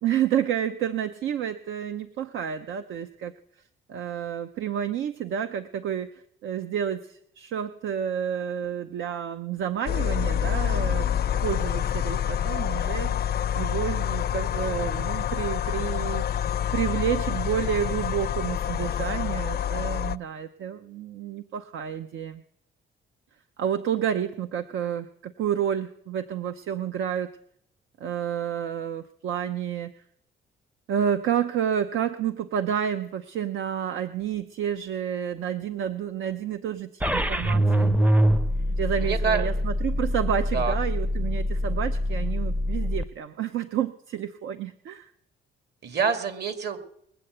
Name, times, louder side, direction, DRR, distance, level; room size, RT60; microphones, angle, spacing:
voice 1, 0.0-3.3 3.9-6.1 6.4-11.1 11.4-13.1 13.5-22.4 23.6-27.3 28.0-29.9 30.9-38.0 38.8-45.1, right 9 dB, 75° right, 9 dB, 0.7 m, -30 dB
sound 1, 9.9-20.2, left 9 dB, 55° left, 0.5 m, -27 dB
sound 2, 37.0-43.0, equal, 5° right, 0.6 m, -24 dB
voice 2, 39.0-39.5 40.5-40.7 45.8-46.9, right 6 dB, 55° right, 7 dB, 2.2 m, -26 dB
20.5 x 7.8 x 7.9 m, 0.72 s
cardioid pair, 90°, 20 cm